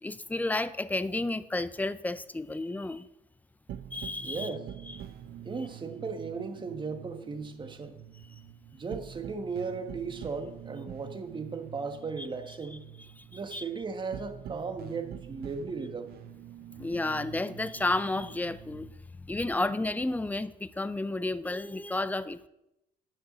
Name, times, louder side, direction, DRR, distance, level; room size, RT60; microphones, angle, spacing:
voice 1, 0.0-3.1 3.9-4.5 4.9-5.0 12.2-12.3 13.2-13.6 16.8-18.9 19.2-22.5, left 2 dB, 10° left, 14 dB, 0.5 m, -32 dB
sound 1, 3.7-18.9, right 10 dB, 65° right, 0.7 m, -46 dB
voice 2, 4.2-4.7 5.4-8.0 8.7-12.8 13.3-16.1, right 4 dB, 30° right, 6 dB, 1.5 m, -36 dB
10.0 x 7.4 x 6.2 m, 0.88 s
cardioid pair, 110°, 17 cm